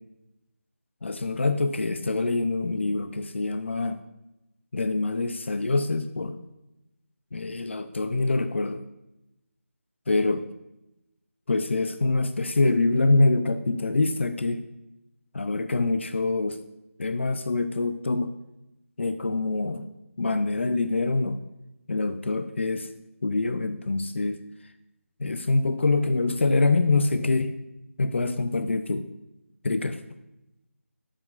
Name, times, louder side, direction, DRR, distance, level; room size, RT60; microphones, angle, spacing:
voice 1, 1.0-4.0 4.7-6.4 7.3-8.8 10.1-10.4 11.5-14.6 15.3-16.6 17.0-18.3 19.0-19.9 20.2-21.4 21.9-22.9 23.2-24.4 25.2-27.5 28.0-29.1 29.6-30.0, left 3 dB, 55° left, 9 dB, 0.7 m, -25 dB
20.0 x 7.5 x 2.5 m, 0.93 s
figure-of-eight pair, 165°, 8 cm